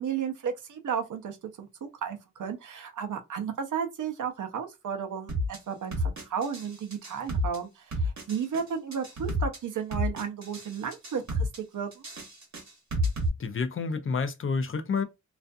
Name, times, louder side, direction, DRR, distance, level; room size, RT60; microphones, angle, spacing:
voice 1, 0.0-11.5 11.7-12.0, right 7 dB, 80° right, 0.6 m, -33 dB
sound 1, 5.3-5.6 5.9-6.7 6.9-7.6 7.9-8.6 8.9-9.6 9.9-10.7 10.9-11.6 11.9-13.3, equal, 65° right, 1.0 m, -29 dB
voice 2, 13.4-15.0, left 5 dB, 45° left, 0.4 m, -29 dB
2.4 x 2.3 x 2.5 m
wide cardioid pair, 115°, 30 cm